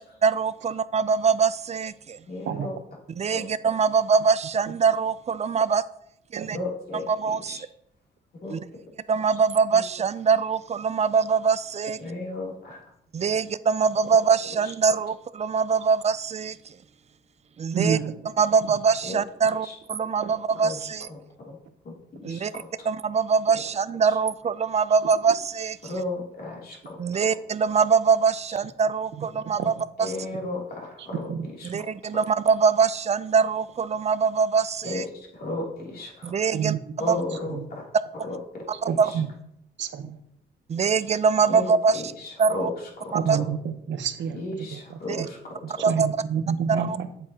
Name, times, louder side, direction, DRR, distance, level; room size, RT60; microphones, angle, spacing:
voice 1, 0.0-2.2 3.2-5.8 6.3-6.6 7.1-7.6 8.5-8.6 9.1-12.0 13.1-16.7 17.6-18.0 18.4-21.1 22.2-22.5 22.9-25.8 27.0-29.7 30.0-30.1 31.6-35.0 36.2-36.7 37.1-37.2 39.0-39.1 40.7-41.9 42.4-42.7 43.3-43.4 45.1-45.2 45.8-46.1 46.7-47.0, right 5 dB, 35° right, 15 dB, 0.5 m, -23 dB
voice 2, 2.3-2.8 3.3-3.5 6.5-7.7 8.4-8.6 9.7-9.8 12.0-12.9 14.6-14.7 19.1-19.8 20.6-21.6 21.8-22.9 24.1-24.2 25.8-27.4 30.0-31.7 34.8-36.4 37.0-37.9 38.1-39.2 41.5-43.4 44.3-45.8, left 2 dB, 50° left, -3 dB, 3.0 m, -35 dB
voice 3, 17.7-18.1 20.2-20.3 29.1-29.3 29.6-29.7 31.3-31.5 36.5-36.8 37.5-37.7 38.9-39.3 39.8-40.2 43.1-45.3 45.8-47.1, right 7 dB, 65° right, 9 dB, 0.9 m, -29 dB
8.2 x 8.0 x 2.9 m, 0.76 s
cardioid pair, 90°, 20 cm